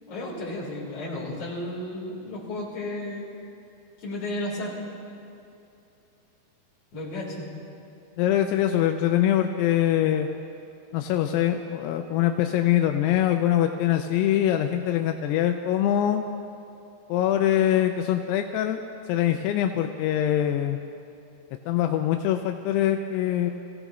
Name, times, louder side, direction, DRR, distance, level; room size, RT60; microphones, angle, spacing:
voice 1, 0.1-3.2 4.0-4.9 6.9-7.5, left 1 dB, 40° left, -6 dB, 4.6 m, -33 dB
voice 2, 8.2-10.3 10.9-16.2 17.1-18.8 19.1-20.8 21.7-23.5, left 11 dB, 85° left, 5 dB, 2.7 m, -23 dB
24.5 x 16.0 x 3.1 m, 2.7 s
omnidirectional pair, 4.7 m